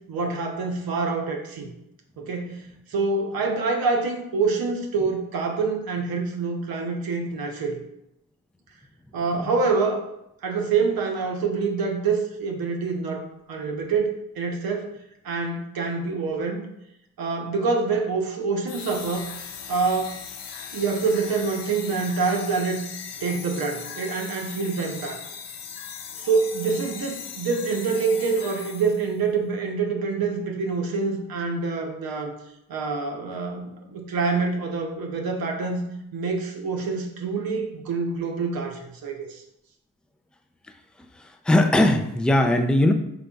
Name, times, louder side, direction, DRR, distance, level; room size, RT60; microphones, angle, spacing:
voice 1, 0.1-1.7 2.2-2.6 2.9-7.8 9.1-10.0 10.4-14.9 15.2-16.6 17.2-19.3 19.7-20.2 20.7-22.8 23.2-25.2 26.2-32.4 32.7-35.8 36.1-39.4, right 4 dB, 60° right, 2 dB, 0.7 m, -26 dB
sound 1, 18.7-29.2, left 7 dB, 85° left, 0.6 m, -38 dB
voice 2, 41.1-42.9, left 1 dB, ahead, 7 dB, 0.3 m, -20 dB
3.8 x 3.3 x 2.3 m, 0.82 s
supercardioid pair, 45°, 40 cm